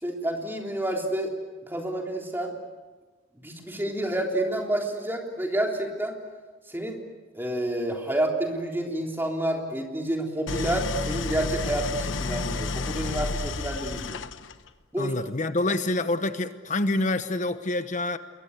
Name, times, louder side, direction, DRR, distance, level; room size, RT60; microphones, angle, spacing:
voice 1, 0.0-1.3 1.7-2.5 3.4-6.2 6.7-7.0 7.3-14.2 14.9-15.1, right 1 dB, 10° right, 1 dB, 3.6 m, -29 dB
Idling, 10.5-14.7, left 3 dB, 85° left, 1.1 m, -31 dB
voice 2, 15.0-18.2, left 2 dB, 40° left, 10 dB, 1.1 m, -27 dB
28.0 x 22.5 x 8.2 m, 1.3 s
head